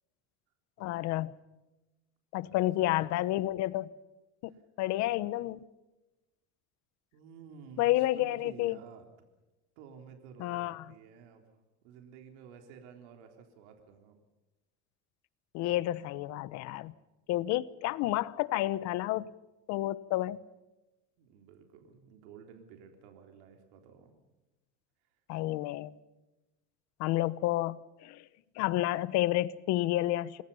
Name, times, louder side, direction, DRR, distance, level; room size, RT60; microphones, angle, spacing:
voice 1, 0.8-1.3 2.3-3.9 4.4-4.5 4.8-5.6 7.8-8.8 10.4-10.8 15.5-16.9 17.3-19.3 19.7-20.4 25.3-25.9 27.0-28.2 28.6-30.4, left 16 dB, 55° left, 17 dB, 1.1 m, -30 dB
voice 2, 2.4-3.1 4.5-4.6 7.1-9.1 9.8-14.2 21.2-24.1, right 7 dB, 80° right, 4 dB, 3.7 m, -53 dB
28.0 x 21.0 x 5.6 m, 1.0 s
cardioid pair, 140°, 33 cm